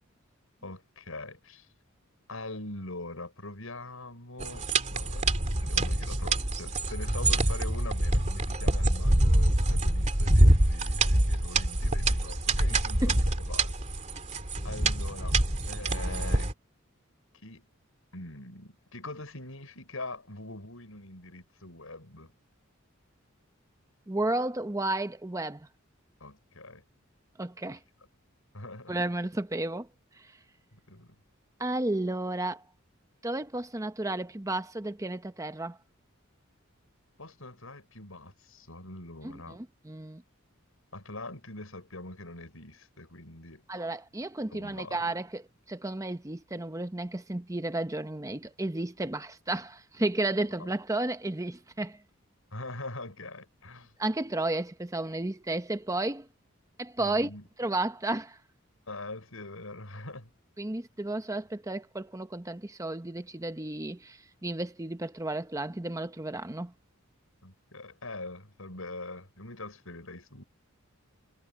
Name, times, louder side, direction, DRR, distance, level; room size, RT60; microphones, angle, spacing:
voice 1, 0.6-1.7 2.3-5.2 5.6-13.7 14.6-15.4 15.7-16.5 17.4-17.6 18.1-22.3 26.2-26.8 27.7-27.8 28.5-28.9 30.7-31.2 37.2-39.6 40.9-43.6 44.5-45.1 50.6-50.7 52.5-53.9 57.0-57.5 58.9-60.3 67.4-70.4, left 2 dB, 85° left, 6.6 m, -43 dB
sound 1, 4.4-16.5, right 1 dB, 35° right, 2.7 m, -25 dB
voice 2, 24.1-25.7 27.4-27.8 28.9-29.9 31.6-32.6 33.2-35.8 39.2-40.2 43.7-52.0 54.0-56.3 56.8-57.3 57.6-58.4 60.6-66.7, right 2 dB, 15° right, 0.9 m, -32 dB
head